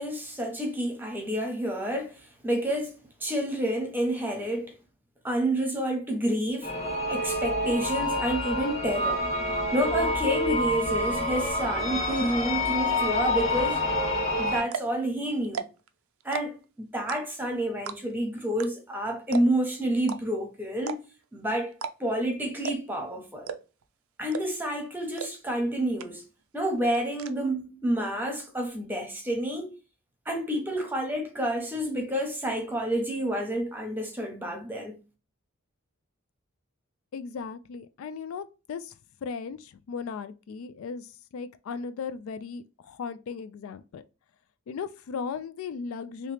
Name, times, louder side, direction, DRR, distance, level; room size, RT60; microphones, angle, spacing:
voice 1, 0.0-2.9 3.2-4.8 5.2-6.7 7.1-9.3 9.7-13.8 14.4-15.7 16.2-21.0 21.3-21.7 22.0-23.5 24.2-26.2 26.5-29.7 30.3-35.0, right 1 dB, 10° right, 0.8 m, -29 dB
sound 1, 6.6-14.6, left 1 dB, 30° left, 1.0 m, -28 dB
sound 2, 14.2-14.3 14.6-15.0 15.4-15.9 16.2-16.7 17.1-17.5 17.9-18.2 18.6-18.7 18.9-19.0 19.3-19.7 20.1-20.2 20.8-21.2 21.7-21.9 22.2-22.3 22.6-23.0 23.4-23.8 24.3-24.7 25.2-25.3 25.6-25.7 26.0-26.4 26.7-27.3, right 6 dB, 75° right, 0.4 m, -35 dB
voice 2, 37.1-38.9 39.2-44.0 44.7-46.3, left 5 dB, 70° left, 0.3 m, -37 dB
3.0 x 2.8 x 3.3 m
head